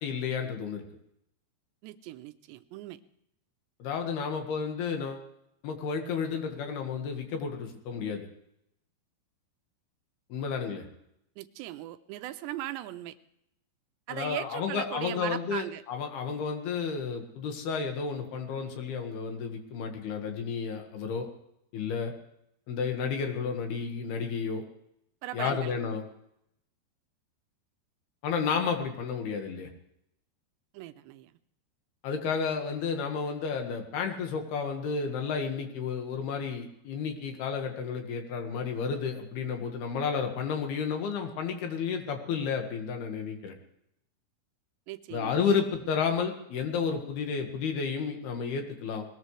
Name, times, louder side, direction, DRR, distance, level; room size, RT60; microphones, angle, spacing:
voice 1, 0.0-0.8 3.8-5.3 5.6-8.3 10.3-10.9 14.1-21.3 21.7-22.1 22.7-24.6 25.3-26.0 28.2-29.7 32.0-43.5 45.1-49.1, left 6 dB, 70° left, 4 dB, 3.5 m, -32 dB
voice 2, 1.8-3.0 11.4-13.2 14.1-15.8 25.2-25.7 30.7-31.4 44.9-45.4, right 14 dB, 85° right, 11 dB, 2.9 m, -38 dB
20.0 x 20.0 x 3.3 m, 0.77 s
omnidirectional pair, 5.0 m